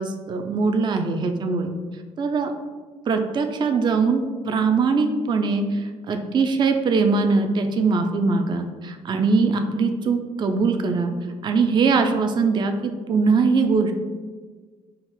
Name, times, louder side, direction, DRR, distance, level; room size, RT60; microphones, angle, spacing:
voice 1, 0.0-1.7 2.2-2.5 3.1-11.1 11.4-13.9, right 4 dB, 25° right, 6 dB, 0.4 m, -21 dB
4.9 x 2.5 x 3.1 m, 1.5 s
figure-of-eight pair, 45°, 18 cm